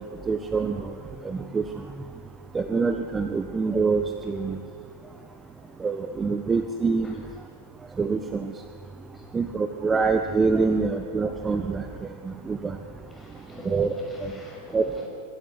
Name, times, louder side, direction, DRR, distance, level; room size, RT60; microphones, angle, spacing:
voice 1, 0.3-0.9 1.2-1.6 2.5-4.6 5.8-7.2 8.0-8.5 9.3-11.9 12.2-12.8 13.6-13.9 14.2-14.3 14.7-15.1, right 4 dB, 15° right, 7 dB, 1.1 m, -25 dB
voice 2, 4.6-5.9 7.0-7.2 9.1-9.4 10.5-10.7 11.7-11.8 13.1-15.1, left 1 dB, 10° left, -2 dB, 6.6 m, -44 dB
26.0 x 13.0 x 9.8 m, 2.2 s
figure-of-eight pair, 90°, 0 cm